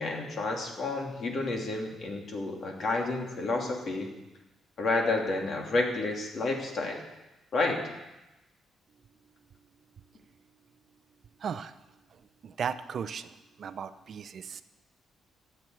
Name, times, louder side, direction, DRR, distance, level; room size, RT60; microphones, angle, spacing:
voice 1, 0.0-4.1 4.8-7.0 7.5-7.9, left 2 dB, 50° left, 1 dB, 2.9 m, -30 dB
voice 2, 11.4-11.7 12.4-13.3 13.6-14.6, right 7 dB, 50° right, 12 dB, 0.6 m, -36 dB
14.0 x 8.0 x 9.3 m, 1.0 s
cardioid pair, 125°, 0 cm